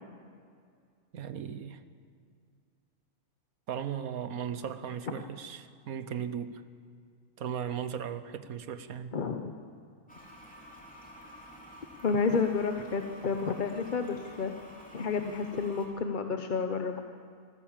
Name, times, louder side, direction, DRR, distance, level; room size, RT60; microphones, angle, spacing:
voice 1, 1.1-1.8 3.7-6.6 7.4-9.1, right 8 dB, 80° right, 12 dB, 1.4 m, -37 dB
voice 2, 9.1-9.5 12.0-14.5 14.9-16.9, left 5 dB, 40° left, 6 dB, 0.9 m, -30 dB
Toilet flush, 10.1-15.9, equal, 5° left, 3.4 m, -50 dB
25.5 x 15.0 x 7.3 m, 2.3 s
omnidirectional pair, 1.5 m